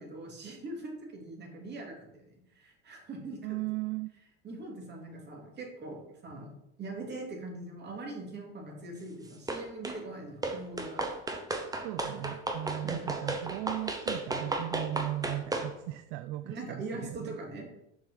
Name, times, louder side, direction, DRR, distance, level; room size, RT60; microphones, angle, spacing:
voice 1, 0.0-3.6 4.4-6.5 6.8-11.0 12.0-12.1 12.8-13.1 16.4-17.8, right 2 dB, 35° right, 0 dB, 2.6 m, -42 dB
voice 2, 3.4-4.1 11.7-17.4, right 16 dB, 65° right, 11 dB, 0.4 m, -37 dB
sound 1, 9.5-10.0 10.4-15.7, right 2 dB, 10° right, 0.9 m, -34 dB
6.5 x 5.6 x 4.1 m, 0.80 s
supercardioid pair, 105°, 30 cm